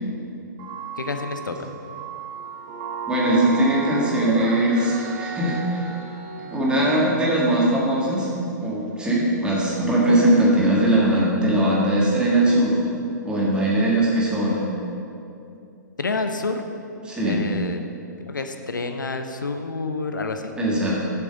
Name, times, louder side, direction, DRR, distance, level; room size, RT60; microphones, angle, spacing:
sound 1, 0.6-6.6, right 5 dB, 35° right, 0.9 m, -33 dB
voice 1, 1.0-1.8 16.0-16.7 17.2-17.8 18.3-20.5, left 3 dB, 80° left, 6 dB, 0.6 m, -28 dB
voice 2, 3.1-5.9 6.4-8.3 8.6-12.8 13.2-14.7 17.1-17.4 20.6-21.0, right 1 dB, 10° right, -6 dB, 1.8 m, -20 dB
7.5 x 6.1 x 5.2 m, 2.7 s
figure-of-eight pair, 115°, 10 cm